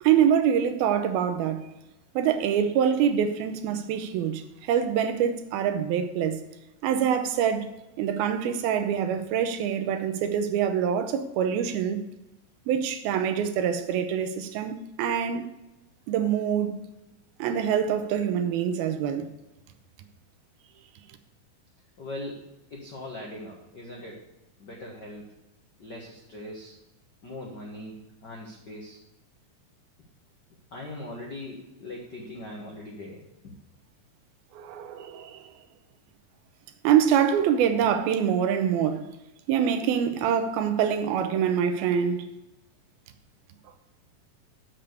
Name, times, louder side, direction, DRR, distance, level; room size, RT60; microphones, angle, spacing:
voice 1, 0.0-1.7 2.2-6.4 6.8-7.7 8.0-12.0 12.7-15.5 16.1-16.8 17.4-19.3 34.5-35.5 36.8-39.1 39.5-42.3, right 8 dB, 85° right, 2.7 m, -25 dB
voice 2, 22.0-24.3 24.6-25.3 25.8-26.8 27.2-29.0 30.7-33.5, left 1 dB, 70° left, 1.0 m, -40 dB
7.2 x 6.8 x 8.0 m
omnidirectional pair, 4.3 m